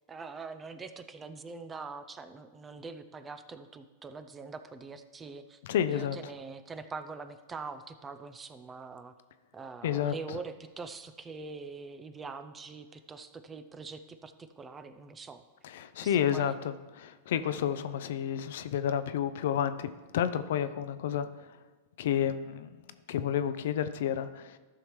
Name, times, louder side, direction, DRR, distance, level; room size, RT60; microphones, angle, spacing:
voice 1, 0.1-5.6 5.9-9.1 9.5-15.4 16.0-16.6 17.8-17.9, right 4 dB, 20° right, 11 dB, 0.5 m, -43 dB
voice 2, 5.6-6.2 9.8-10.4 15.6-21.6 22.0-22.7 23.1-24.6, left 9 dB, 70° left, 12 dB, 0.5 m, -30 dB
13.5 x 5.8 x 3.2 m, 1.3 s
hypercardioid pair, 120°, 0 cm